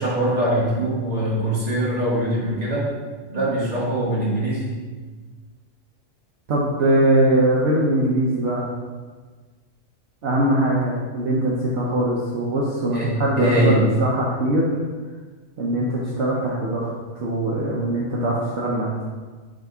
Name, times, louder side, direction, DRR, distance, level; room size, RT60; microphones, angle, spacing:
voice 1, 0.0-2.9 3.3-4.7 12.9-13.8, right 1 dB, 30° right, -7 dB, 1.8 m, -22 dB
voice 2, 6.5-8.7 10.2-14.7 15.6-16.9 17.2-19.0, right 1 dB, 60° right, -5 dB, 1.1 m, -21 dB
5.1 x 3.5 x 5.5 m, 1.4 s
omnidirectional pair, 1.3 m